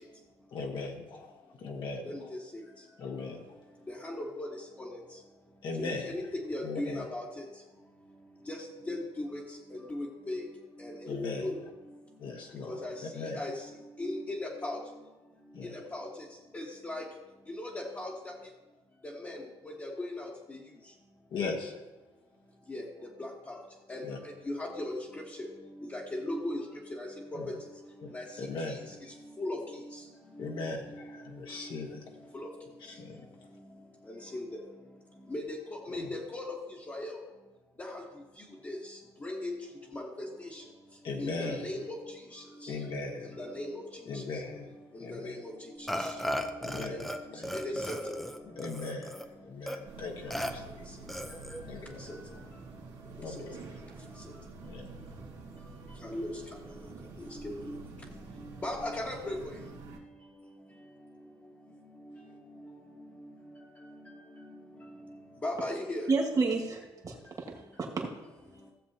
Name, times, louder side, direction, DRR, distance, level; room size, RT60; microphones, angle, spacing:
voice 1, 0.5-2.3 3.0-3.5 5.6-6.2 6.6-7.1 11.1-11.6 12.2-13.4 15.5-15.7 21.3-21.8 24.0-24.2 27.3-27.6 28.0-29.0 30.4-32.0 32.9-33.3 35.9-36.2 41.0-41.9 42.7-43.4 44.1-45.4 46.6-47.6 48.4-50.8 51.6-52.1 53.2-54.0 54.6-55.0, left 3 dB, 50° left, 1 dB, 1.3 m, -39 dB
voice 2, 3.9-4.5 4.8-5.0 5.8-7.4 8.5-9.4 9.7-10.4 10.8-11.5 12.7-13.5 14.0-14.8 15.6-16.1 16.5-17.1 17.5-18.3 19.0-19.4 19.8-20.6 22.7-22.8 23.2-23.6 23.9-24.0 24.5-25.5 25.9-26.6 26.9-27.4 28.1-28.3 28.7-28.8 29.4-29.6 29.9-30.0 30.4-30.6 32.3-32.5 34.1-34.6 35.3-36.6 36.9-37.2 37.8-38.0 38.6-39.6 39.9-40.6 41.2-42.0 42.3-42.7 43.4-43.8 44.1-44.2 44.9-45.5 45.8-46.2 46.6-47.0 47.5-48.2 52.0-52.1 53.4-53.5 56.0-56.3 57.2-57.8 58.6-59.5 65.4-66.1, left 1 dB, 20° left, -5 dB, 1.4 m, -38 dB
Burping eructation, 45.9-47.2 47.4-49.3 49.7-49.8 50.3-50.5 51.1-51.6, equal, ahead, 0.7 m, -35 dB
sound 1, 49.8-60.0, right 3 dB, 85° right, 2.0 m, -48 dB
voice 3, 66.1-68.1, right 3 dB, 35° right, -1 dB, 1.9 m, -31 dB
16.5 x 7.3 x 2.8 m, 1.1 s
cardioid pair, 125°, 10 cm